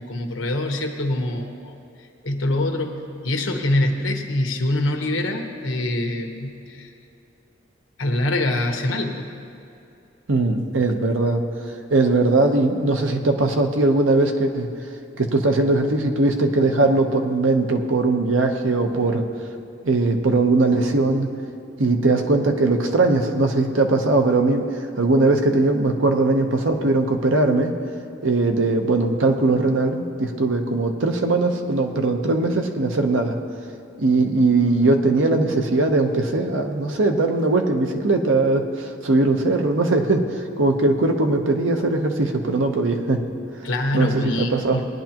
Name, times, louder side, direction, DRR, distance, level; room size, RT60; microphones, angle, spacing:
voice 1, 0.0-1.7 2.2-3.0 3.2-6.9 8.0-9.3 43.6-44.9, left 1 dB, 80° left, 4 dB, 1.1 m, -24 dB
voice 2, 10.3-11.4 11.9-14.7 15.2-19.2 19.8-21.3 21.8-24.7 25.0-27.7 28.2-33.3 34.0-43.2 43.9-44.8, right 2 dB, 80° right, 4 dB, 0.9 m, -20 dB
19.0 x 10.5 x 2.9 m, 2.6 s
head